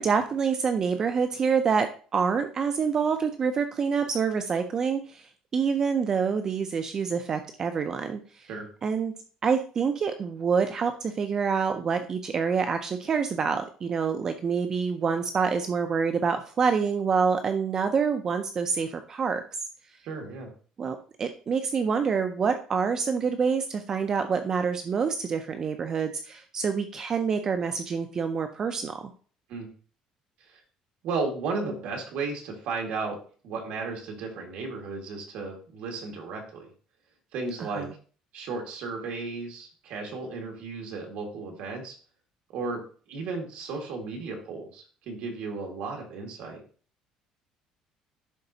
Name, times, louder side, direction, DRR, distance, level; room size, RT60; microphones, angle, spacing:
voice 1, 0.0-5.3 5.5-8.5 8.8-9.1 9.4-19.4 20.8-29.1 37.6-37.9, right 6 dB, 25° right, 7 dB, 0.4 m, -27 dB
voice 2, 20.0-20.5 29.5-29.7 30.4-30.6 31.0-36.7 37.3-37.9 38.3-42.0 42.5-42.8 43.1-46.6, right 4 dB, 60° right, 1 dB, 1.8 m, -34 dB
11.0 x 3.9 x 2.7 m, 0.41 s
cardioid pair, 170°, 2 cm